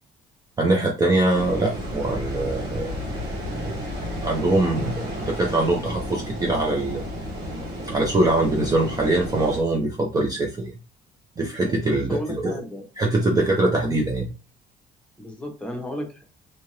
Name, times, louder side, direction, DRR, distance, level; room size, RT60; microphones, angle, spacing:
voice 1, 0.6-2.9 3.7-3.8 4.2-7.0 7.9-10.7 11.4-12.6 13.0-14.3, right 2 dB, 20° right, 0 dB, 0.5 m, -23 dB
sound 1, 1.3-9.6, equal, 85° right, 1.1 m, -32 dB
voice 2, 11.9-12.8 13.2-13.3 15.2-16.2, equal, 5° left, 1 dB, 0.9 m, -34 dB
2.7 x 2.4 x 3.1 m, 0.31 s
cardioid pair, 110°, 17 cm